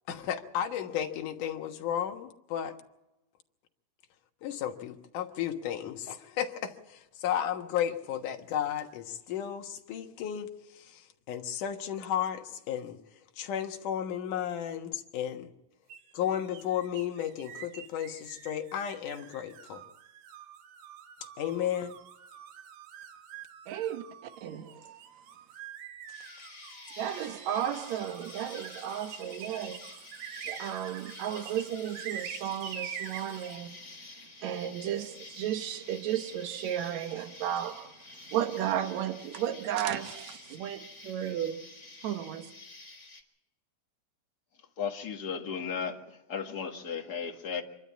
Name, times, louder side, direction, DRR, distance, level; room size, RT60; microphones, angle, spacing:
voice 1, 0.1-2.8 4.4-13.0 13.4-15.5 16.1-19.8 21.4-22.0, left 10 dB, 70° left, 2.8 m, -33 dB
sound 1, 15.9-33.6, right 8 dB, 85° right, 2.9 m, -46 dB
voice 2, 23.7-24.7 27.0-29.9 30.5-33.8 34.4-38.0 38.3-41.7 42.0-42.5, right 10 dB, 65° right, 2.2 m, -34 dB
Insect, 26.1-43.2, left 2 dB, 20° left, 3.1 m, -49 dB
voice 3, 44.8-47.6, left 6 dB, 40° left, 1.6 m, -35 dB
26.5 x 12.0 x 8.4 m
omnidirectional pair, 3.9 m